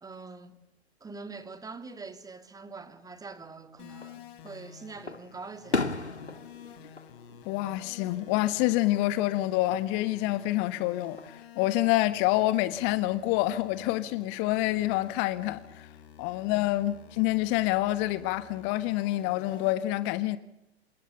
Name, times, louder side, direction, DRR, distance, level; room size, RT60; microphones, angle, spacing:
voice 1, 0.0-0.6 1.0-5.9 16.5-16.7, right 4 dB, 10° right, 2.5 m, -44 dB
sound 1, 3.8-19.7, left 9 dB, 55° left, 5.5 m, -51 dB
Fireworks, 3.9-4.6 5.1-8.2 8.5-9.1 10.6-11.4, left 3 dB, 90° left, 1.8 m, -36 dB
voice 2, 7.5-15.9 16.2-20.4, left 16 dB, 35° left, 1.3 m, -27 dB
28.0 x 28.0 x 7.0 m
figure-of-eight pair, 105°, 33 cm